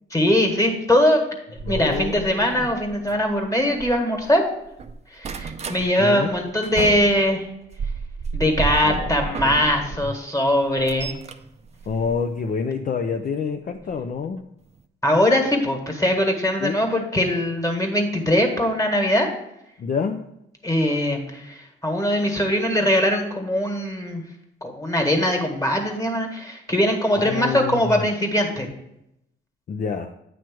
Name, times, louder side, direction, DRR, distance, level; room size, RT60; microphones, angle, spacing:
voice 1, 0.1-1.2 1.7-4.4 5.1-7.5 8.3-11.1 15.0-19.3 20.6-24.2 24.6-28.7, left 1 dB, 15° left, 3 dB, 1.6 m, -21 dB
sound 1, 1.6-4.3 4.7-5.8 6.3-10.1 10.5-12.7 13.7-13.9 14.4-14.5 14.7-14.8, right 5 dB, 35° right, 0.5 m, -33 dB
voice 2, 1.7-2.7 6.0-6.3 8.8-9.3 11.9-14.4 16.6-16.9 19.8-20.2 27.2-28.0 29.7-30.1, left 5 dB, 45° left, 5 dB, 0.5 m, -27 dB
9.2 x 3.1 x 6.1 m, 0.81 s
cardioid pair, 90°, 20 cm